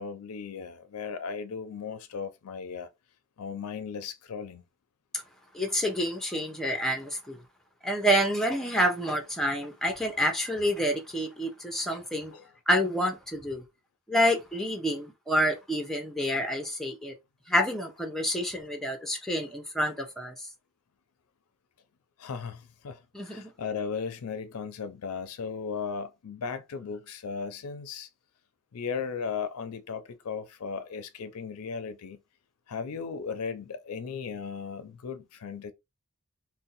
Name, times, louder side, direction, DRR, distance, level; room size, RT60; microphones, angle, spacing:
voice 1, 0.0-2.9 3.4-4.6 12.3-12.5 22.2-28.1 28.7-32.2 32.7-35.7, left 6 dB, 75° left, 0.5 m, -36 dB
voice 2, 5.5-7.4 7.8-12.3 12.7-13.6 14.1-17.2 17.5-20.5 23.1-23.5, equal, ahead, 0.6 m, -28 dB
2.6 x 2.1 x 3.9 m
head